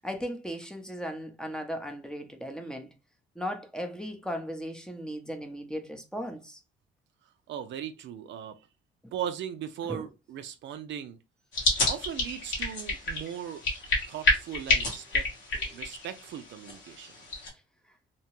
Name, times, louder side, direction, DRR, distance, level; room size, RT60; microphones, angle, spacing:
voice 1, 0.0-2.9 3.4-6.6 9.0-9.1 9.8-10.0 14.8-14.9 15.7-15.8, equal, 5° left, 0.6 m, -37 dB
voice 2, 7.5-8.6 9.1-11.2 11.9-13.6 14.1-15.3 15.7-17.1, right 9 dB, 70° right, 0.4 m, -38 dB
sound 1, 11.5-17.5, left 2 dB, 75° left, 1.4 m, -29 dB
2.8 x 2.1 x 3.0 m
cardioid pair, 90°, 20 cm